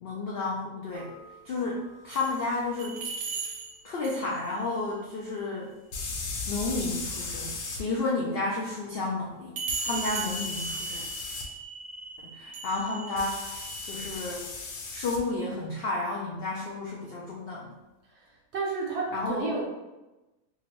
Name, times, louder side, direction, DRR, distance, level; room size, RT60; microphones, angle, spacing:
voice 1, 0.0-1.1 1.4-3.0 3.8-5.7 6.5-11.0 12.2-14.5 14.9-17.8 19.1-19.5, left 3 dB, 70° left, -4 dB, 0.5 m, -32 dB
sound 1, 1.0-2.4 2.7-4.5 8.2-8.3 9.6-14.3, right 4 dB, 85° right, 1.1 m, -38 dB
sound 2, 2.5-2.6 5.9-7.8 9.7-11.5 13.2-15.2, left 3 dB, 85° left, 1.1 m, -36 dB
voice 2, 18.5-19.6, right 3 dB, 60° right, -4 dB, 0.8 m, -31 dB
2.8 x 2.5 x 3.0 m, 1.0 s
omnidirectional pair, 1.5 m